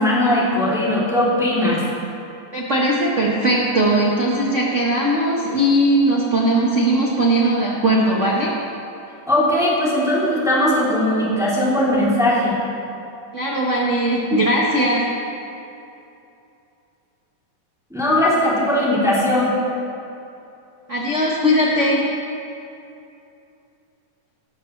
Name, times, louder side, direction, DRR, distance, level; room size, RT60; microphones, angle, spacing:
voice 1, 0.0-1.8 9.3-12.6 17.9-19.5, left 1 dB, ahead, -7 dB, 2.6 m, -19 dB
voice 2, 2.5-8.5 13.3-15.0 20.9-22.0, right 1 dB, 85° right, -4 dB, 0.6 m, -19 dB
18.0 x 14.0 x 3.2 m, 2.7 s
omnidirectional pair, 3.7 m